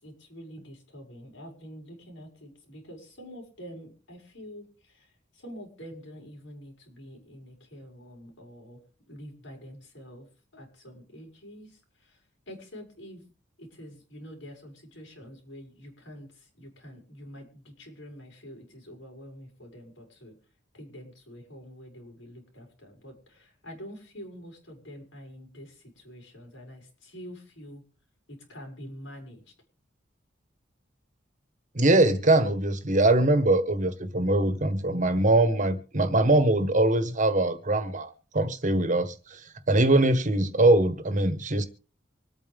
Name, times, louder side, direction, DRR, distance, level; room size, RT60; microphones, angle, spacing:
voice 1, 0.0-8.8 9.1-10.3 10.5-12.2 12.5-13.2 13.6-20.3 20.7-27.8 28.3-29.4, equal, 85° left, 6.0 m, -46 dB
voice 2, 31.7-39.4 39.7-41.6, right 2 dB, 45° right, 1.5 m, -22 dB
25.5 x 9.0 x 3.6 m
head